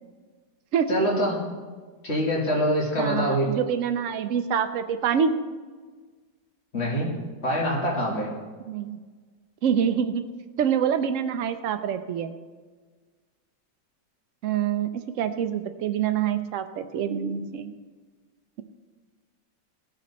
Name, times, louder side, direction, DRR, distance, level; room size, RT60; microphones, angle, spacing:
voice 1, 0.9-1.3 2.0-3.5 6.7-7.1 7.4-8.3, equal, 35° left, -3 dB, 2.5 m, -24 dB
voice 2, 3.0-5.3 8.7-9.0 9.6-10.2 10.6-12.3 14.4-17.7, right 8 dB, 65° right, 9 dB, 0.8 m, -26 dB
16.0 x 6.7 x 4.2 m, 1.4 s
omnidirectional pair, 1.9 m